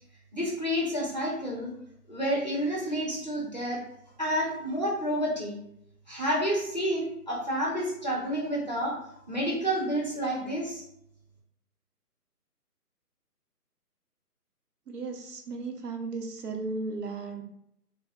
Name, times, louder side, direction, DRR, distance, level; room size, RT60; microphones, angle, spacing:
voice 1, 0.3-1.7 2.1-3.8 4.2-5.6 6.1-8.9 9.3-10.8, equal, 30° left, -3 dB, 0.5 m, -29 dB
voice 2, 14.9-17.4, right 3 dB, 80° right, 4 dB, 0.8 m, -35 dB
4.2 x 2.0 x 2.3 m, 0.75 s
hypercardioid pair, 155°, 47 cm